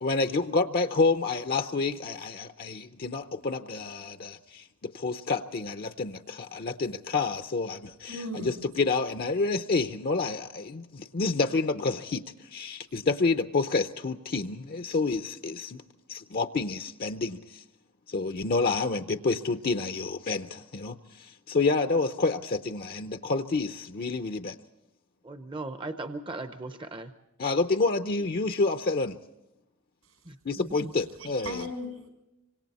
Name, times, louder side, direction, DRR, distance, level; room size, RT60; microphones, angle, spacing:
voice 1, 0.0-12.2 12.5-15.8 16.1-17.6 18.1-24.6 27.4-29.2 30.5-31.6, left 3 dB, 45° left, 8 dB, 0.6 m, -29 dB
voice 2, 8.1-8.6 31.2-32.1, left 1 dB, 85° right, 4 dB, 6.8 m, -37 dB
voice 3, 25.2-27.1 30.6-30.9, right 2 dB, 25° right, 9 dB, 0.7 m, -37 dB
25.5 x 25.5 x 4.2 m, 0.90 s
head